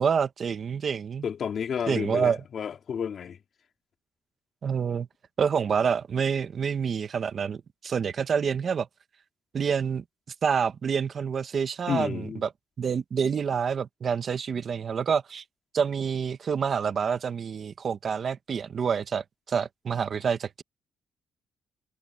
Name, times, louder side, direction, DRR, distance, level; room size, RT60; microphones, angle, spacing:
voice 1, 0.0-1.2 1.9-2.4 4.6-5.1 5.4-8.9 9.5-10.0 10.4-12.5 12.8-15.4 15.7-20.6, right 6 dB, 45° right, 1.4 m, -27 dB
voice 2, 1.2-3.4 11.9-12.4, left 7 dB, 50° left, 3.1 m, -31 dB
cardioid pair, 115°, 0 cm